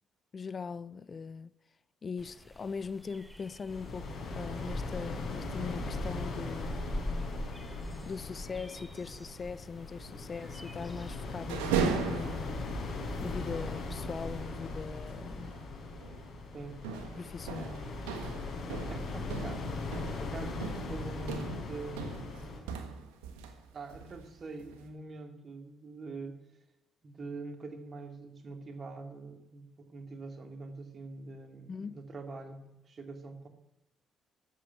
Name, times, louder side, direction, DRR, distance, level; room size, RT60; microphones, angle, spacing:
voice 1, 0.3-1.5 2.0-6.8 8.0-15.6 16.9-17.6 31.7-32.0, left 5 dB, 45° left, 0.5 m, -41 dB
sound 1, 2.2-14.4, left 1 dB, ahead, 1.1 m, -45 dB
sound 2, 3.7-22.6, left 3 dB, 60° left, 4.5 m, -39 dB
sound 3, 11.5-12.8 13.2-13.3 13.5-13.7 15.4-15.7 16.0-16.3 16.8-23.6 23.9-24.9, right 6 dB, 85° right, 1.5 m, -37 dB
voice 2, 17.5-17.9 18.9-22.8 23.7-26.4 27.0-33.5, right 3 dB, 45° right, 2.3 m, -44 dB
12.5 x 8.3 x 9.2 m
hypercardioid pair, 50°, 0 cm